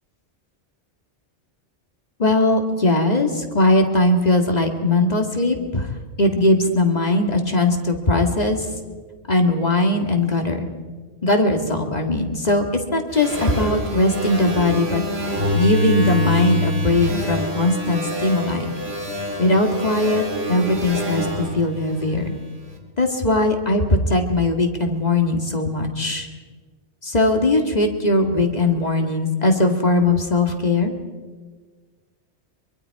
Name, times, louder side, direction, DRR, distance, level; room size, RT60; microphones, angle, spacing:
voice 1, 2.2-5.9 6.2-8.7 9.3-10.7 11.2-15.0 15.5-18.7 19.4-22.3 23.0-26.3 27.0-30.9, left 2 dB, 35° left, 4 dB, 2.1 m, -20 dB
sound 1, 13.1-22.6, equal, 60° right, 2.6 m, -26 dB
24.5 x 23.5 x 4.8 m, 1.4 s
omnidirectional pair, 1.2 m